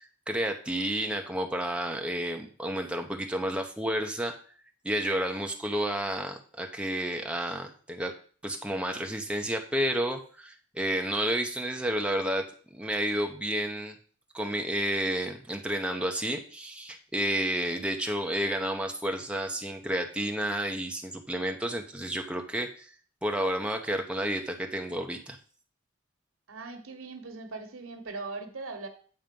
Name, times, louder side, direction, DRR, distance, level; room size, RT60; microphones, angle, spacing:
voice 1, 0.0-4.3 4.8-8.1 8.4-12.5 12.7-13.9 14.3-22.9 23.2-25.4, right 1 dB, 5° right, 3 dB, 0.9 m, -31 dB
voice 2, 26.5-28.9, right 3 dB, 90° right, 8 dB, 1.2 m, -40 dB
9.2 x 4.2 x 5.3 m, 0.43 s
head